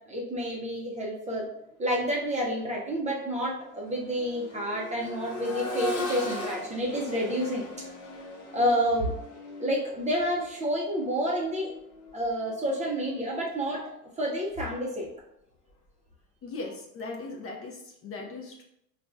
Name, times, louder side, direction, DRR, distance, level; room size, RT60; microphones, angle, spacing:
voice 1, 0.1-1.5 1.8-7.7 8.5-9.1 9.6-11.7 12.1-15.1, equal, 15° right, -2 dB, 0.6 m, -29 dB
Accelerating revving vroom, 2.2-2.3 2.8-12.7 14.4-14.5, left 1 dB, 50° left, 1.0 m, -39 dB
voice 2, 16.4-18.6, left 3 dB, 30° left, 0 dB, 0.6 m, -39 dB
4.8 x 2.4 x 2.4 m, 0.77 s
hypercardioid pair, 80°, 44 cm